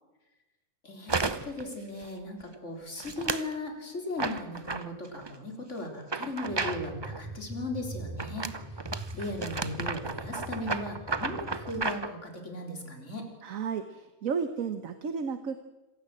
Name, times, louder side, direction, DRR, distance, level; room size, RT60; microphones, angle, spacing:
voice 1, 0.8-13.3, left 1 dB, 55° left, 3 dB, 4.1 m, -37 dB
sound 1, 1.1-1.6 2.0-2.4 3.0-3.5 4.2-5.3 6.0-7.2 8.2-12.1, right 4 dB, 25° right, 0.6 m, -33 dB
sound 2, 6.5-11.8, right 1 dB, 5° right, 3.0 m, -42 dB
voice 2, 13.4-15.6, right 6 dB, 70° right, 10 dB, 1.5 m, -33 dB
27.0 x 16.0 x 7.6 m, 1.1 s
omnidirectional pair, 1.5 m